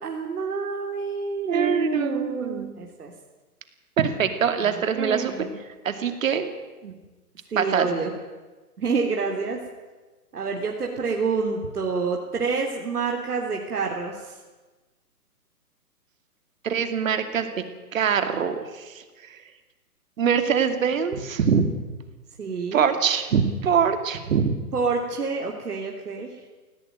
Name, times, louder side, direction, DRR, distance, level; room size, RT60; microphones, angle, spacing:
voice 1, 0.0-3.1 4.6-5.6 7.5-8.1 8.8-9.6 10.3-14.4 22.4-22.8 24.7-26.3, right 4 dB, 75° right, 1 dB, 3.3 m, -28 dB
voice 2, 1.5-2.7 4.0-5.3 5.8-6.5 6.8-6.9 7.6-7.9 16.6-17.6 17.9-19.4 20.2-21.7 22.7-24.6, right 7 dB, 60° right, 8 dB, 2.6 m, -24 dB
18.0 x 17.0 x 9.1 m, 1.2 s
hypercardioid pair, 145°, 46 cm